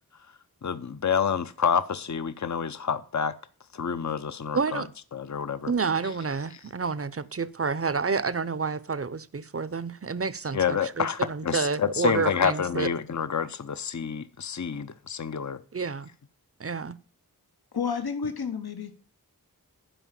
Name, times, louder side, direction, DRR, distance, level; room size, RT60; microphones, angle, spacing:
voice 1, 0.6-3.3 3.7-4.8 5.1-5.7 10.5-15.6, left 7 dB, 50° left, 0.7 m, -28 dB
voice 2, 4.5-4.9 5.7-12.9 15.7-16.1 16.6-17.0, right 5 dB, 40° right, 0.6 m, -29 dB
voice 3, 17.7-18.9, left 6 dB, 75° left, 1.1 m, -30 dB
11.5 x 5.0 x 7.3 m
wide cardioid pair, 40°, 38 cm